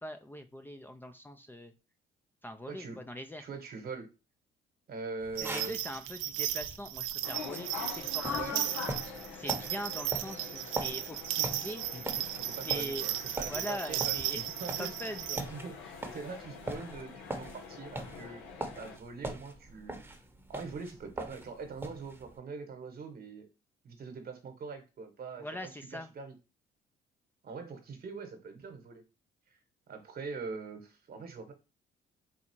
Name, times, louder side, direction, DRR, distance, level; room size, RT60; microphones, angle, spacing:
voice 1, 0.0-1.7 2.4-3.5 5.4-8.7 9.3-12.2 12.6-13.0 13.5-14.4 14.8-15.4 25.4-26.1, equal, 10° left, 0.5 m, -42 dB
voice 2, 2.7-3.0 3.4-4.1 4.9-5.9 8.3-8.7 12.4-14.2 14.6-18.5 18.8-20.0 20.5-23.5 23.8-25.5 25.9-26.3 27.4-29.0 29.5-29.6 29.9-31.5, right 4 dB, 50° right, 1.2 m, -43 dB
sound 1, 5.2-22.4, right 1 dB, 10° right, 0.9 m, -43 dB
sound 2, 5.4-15.4, right 14 dB, 85° right, 0.4 m, -35 dB
sound 3, 7.2-19.0, left 6 dB, 85° left, 0.8 m, -44 dB
4.0 x 2.3 x 4.4 m
cardioid pair, 85°, 20 cm